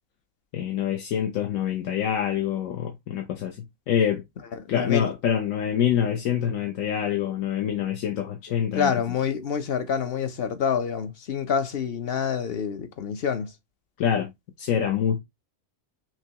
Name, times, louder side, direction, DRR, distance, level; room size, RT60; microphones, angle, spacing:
voice 1, 0.5-4.2 4.7-8.9 14.0-14.3 14.6-15.2, left 9 dB, 85° left, 1.1 m, -26 dB
voice 2, 4.7-5.1 8.8-13.5, left 7 dB, 55° left, 0.8 m, -27 dB
5.9 x 2.3 x 2.8 m
omnidirectional pair, 1.4 m